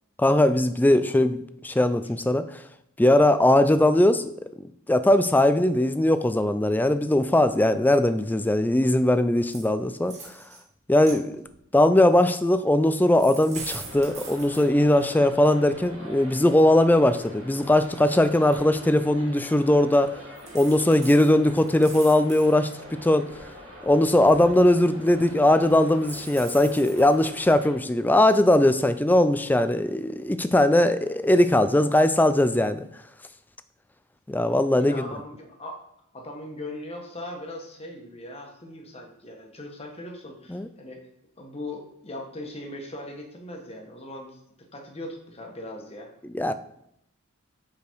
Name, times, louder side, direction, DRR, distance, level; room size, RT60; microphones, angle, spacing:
voice 1, 0.2-2.4 3.0-4.3 4.9-10.2 10.9-11.4 11.7-20.2 20.5-22.7 23.0-23.3 23.8-32.9 34.3-35.0 40.5-40.7 46.3-46.5, left 1 dB, 10° left, 0.3 m, -20 dB
sound 1, 9.5-9.7 10.0-10.6 11.0-11.6 12.8-15.0 16.2-16.3 16.7-18.0 18.5-18.6 19.1-19.3 20.0-20.1 20.4-22.7 23.2-24.6 25.9-27.3, right 4 dB, 35° right, 1.8 m, -42 dB
sound 2, 13.8-27.7, left 1 dB, 85° right, 1.9 m, -44 dB
voice 2, 34.8-35.8 36.1-41.0 41.4-44.4 44.7-46.1, left 1 dB, 30° left, 1.3 m, -39 dB
6.9 x 5.1 x 4.6 m
head